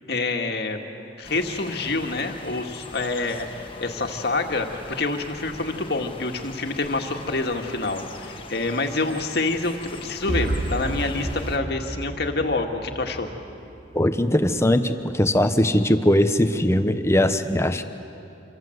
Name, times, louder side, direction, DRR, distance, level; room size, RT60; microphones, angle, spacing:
voice 1, 0.1-0.8 1.2-13.3, left 3 dB, 65° left, 4 dB, 2.0 m, -27 dB
sound 1, 1.2-11.6, left 2 dB, 30° left, 1.7 m, -41 dB
sound 2, 10.3-14.2, right 1 dB, 50° right, 1.7 m, -31 dB
voice 2, 13.9-17.8, left 1 dB, 15° left, 9 dB, 1.0 m, -20 dB
27.5 x 24.0 x 8.0 m, 2.7 s
head